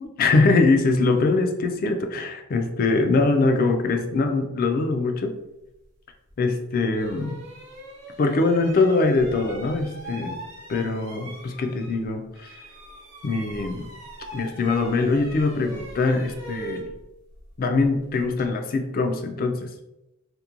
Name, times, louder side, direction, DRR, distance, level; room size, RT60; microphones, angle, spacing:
voice 1, 0.2-5.3 6.4-7.4 8.2-10.4 10.7-12.5 13.2-13.9 14.3-16.9 17.6-19.7, left 3 dB, 40° left, 5 dB, 0.3 m, -22 dB
sound 1, 6.3-6.4 6.9-12.1 12.3-18.5, right 1 dB, 55° right, 0.9 m, -41 dB
2.8 x 2.1 x 2.4 m, 0.93 s
head